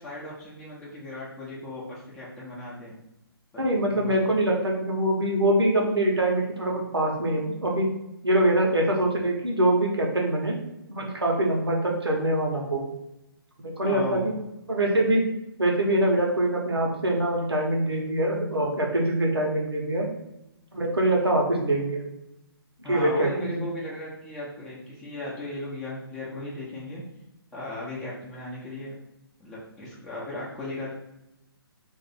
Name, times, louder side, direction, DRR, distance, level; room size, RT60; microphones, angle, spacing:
voice 1, 0.0-2.9 3.5-4.1 13.8-14.2 22.8-27.0 27.5-29.0 29.4-30.9, left 2 dB, 5° left, -8 dB, 0.7 m, -37 dB
voice 2, 3.6-7.9 8.2-10.6 10.9-12.8 13.8-14.3 14.7-15.2 15.6-20.1 20.7-22.0 22.9-23.6, right 1 dB, 85° right, -1 dB, 1.1 m, -24 dB
2.6 x 2.5 x 4.1 m, 0.89 s
figure-of-eight pair, 140°, 13 cm